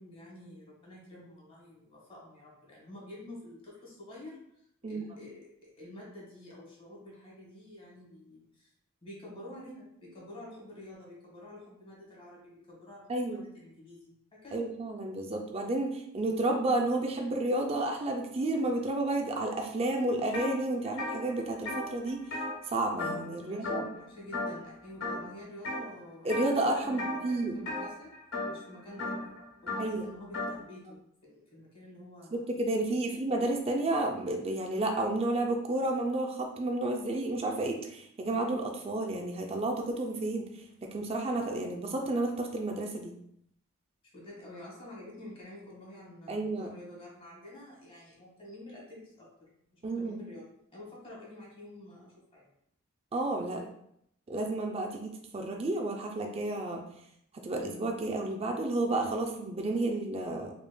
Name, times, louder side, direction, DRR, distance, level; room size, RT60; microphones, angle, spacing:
voice 1, 0.0-4.4 4.9-8.7 9.0-14.7 23.4-26.3 26.8-28.1 28.5-29.3 29.6-32.5 33.0-33.3 44.1-50.4 50.7-52.5, left 1 dB, 25° left, -4 dB, 1.6 m, -49 dB
voice 2, 13.1-13.5 14.5-22.2 22.7-23.8 26.2-27.5 29.8-30.1 32.3-40.4 40.9-43.1 46.3-46.7 49.8-50.2 53.1-53.6 54.3-56.8 57.4-60.5, right 2 dB, 30° right, 2 dB, 0.4 m, -31 dB
sound 1, 20.3-20.5 20.8-23.4 23.6-24.0 24.3-24.7 25.0-25.8 26.3-26.6 26.9-30.6, left 2 dB, 70° left, 1.2 m, -36 dB
5.1 x 3.1 x 2.2 m, 0.73 s
head